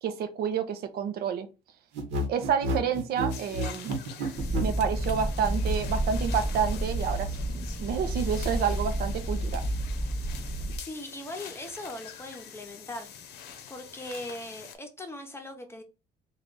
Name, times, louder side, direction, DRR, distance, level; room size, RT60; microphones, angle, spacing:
voice 1, 0.0-1.5 2.3-3.9 4.6-9.6, right 7 dB, 65° right, 0.6 m, -29 dB
sound 1, 1.9-4.7, right 1 dB, 90° right, 1.0 m, -30 dB
sound 2, 3.3-14.8, left 8 dB, 75° left, 0.7 m, -45 dB
sound 3, 4.4-10.8, right 1 dB, 10° right, 0.5 m, -30 dB
voice 2, 10.8-13.2 13.7-15.8, left 1 dB, 15° left, 0.8 m, -40 dB
3.2 x 2.4 x 3.9 m
cardioid pair, 110°, 17 cm